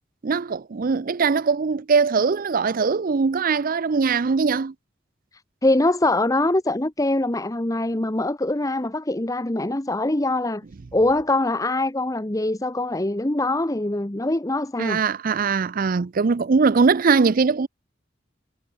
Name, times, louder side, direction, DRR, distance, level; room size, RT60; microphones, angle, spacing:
voice 1, 0.2-4.7 14.8-17.7, right 5 dB, 45° right, 0.5 m, -21 dB
voice 2, 5.6-10.6 10.9-15.0, left 2 dB, 20° left, 1.0 m, -23 dB
head